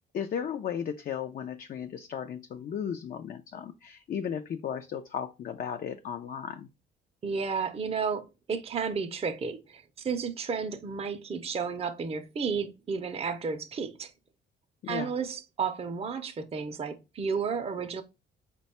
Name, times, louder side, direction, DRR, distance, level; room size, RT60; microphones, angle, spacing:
voice 1, 0.1-6.7 14.8-15.1, left 8 dB, 45° left, 0.4 m, -35 dB
voice 2, 7.2-14.1 14.9-18.0, right 5 dB, 30° right, 0.5 m, -32 dB
4.0 x 2.2 x 4.1 m
cardioid pair, 90°, 20 cm